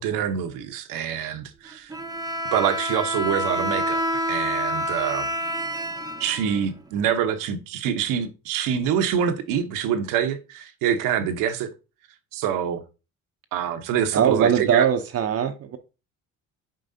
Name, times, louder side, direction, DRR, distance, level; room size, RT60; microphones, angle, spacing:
voice 1, 0.0-1.9 2.5-5.3 6.2-11.7 12.3-12.8 13.5-14.9, right 8 dB, 85° right, 0.9 m, -25 dB
Bowed string instrument, 1.9-6.9, left 1 dB, 10° right, 0.7 m, -28 dB
voice 2, 14.1-15.8, right 8 dB, 50° right, 0.7 m, -21 dB
7.6 x 4.7 x 2.6 m
cardioid pair, 90°, 32 cm